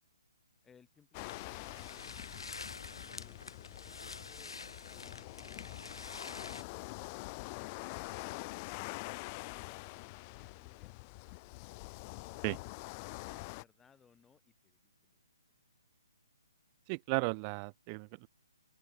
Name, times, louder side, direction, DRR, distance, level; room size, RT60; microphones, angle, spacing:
voice 1, 0.6-2.5 3.0-5.8 9.5-11.0 13.3-15.2 18.1-18.2, left 6 dB, 10° left, 5.9 m, -66 dB
sound 1, 1.1-13.6, left 27 dB, 30° left, 0.6 m, -45 dB
sound 2, 1.3-6.6, left 4 dB, 80° left, 3.2 m, -47 dB
voice 2, 16.9-18.3, right 38 dB, 25° right, 0.4 m, -35 dB
open air
hypercardioid pair, 145°, 3 cm